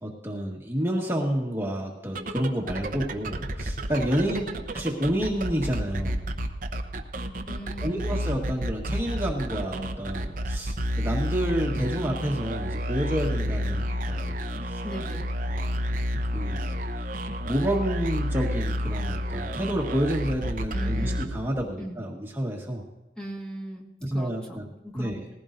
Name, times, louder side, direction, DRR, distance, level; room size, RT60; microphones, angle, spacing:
voice 1, 0.0-4.4 4.7-6.2 7.8-14.4 14.6-14.8 15.5-15.7 16.3-16.8 17.4-22.8 24.0-24.6 24.9-25.2, equal, 15° right, -1 dB, 1.5 m, -29 dB
sound 1, 2.0-21.8, equal, 50° right, 0.9 m, -30 dB
voice 2, 4.3-4.6 7.5-8.2 14.8-15.3 20.7-21.3 21.8-22.0 23.2-25.3, equal, 5° left, -2 dB, 1.7 m, -38 dB
19.5 x 15.5 x 2.7 m, 1.1 s
head